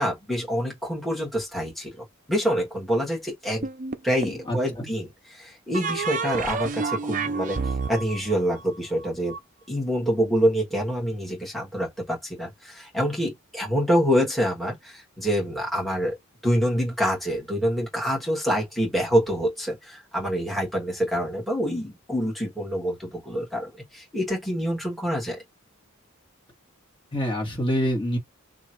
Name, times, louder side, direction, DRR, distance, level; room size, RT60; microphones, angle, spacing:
voice 1, 0.0-3.7 4.0-7.6 7.9-9.3 9.7-16.2 16.4-25.4, equal, ahead, 1.5 m, -26 dB
sound 1, 3.6-4.5 5.7-9.4, right 4 dB, 40° right, 0.5 m, -30 dB
voice 2, 4.5-4.9 27.1-28.2, equal, 25° left, 1.7 m, -26 dB
3.0 x 2.5 x 4.3 m
head